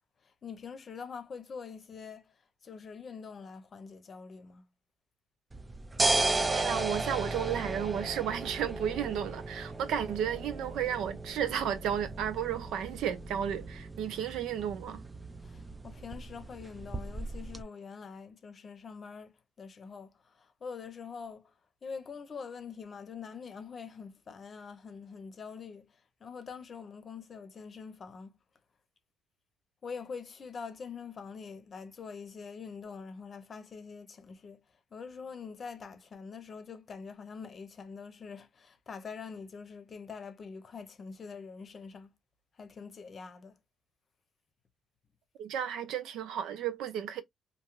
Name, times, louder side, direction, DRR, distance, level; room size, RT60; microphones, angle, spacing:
voice 1, 0.4-2.2 2.6-4.6 15.4-20.1 20.4-21.5 21.8-25.9 26.2-28.4 29.8-34.6 34.9-42.1 42.6-43.5, left 5 dB, 45° left, 0.7 m, -44 dB
sound 1, 5.5-17.6, right 2 dB, 20° right, 0.4 m, -35 dB
voice 2, 6.5-15.0 45.4-47.2, right 9 dB, 85° right, 0.6 m, -33 dB
2.6 x 2.3 x 3.0 m
cardioid pair, 90°, 0 cm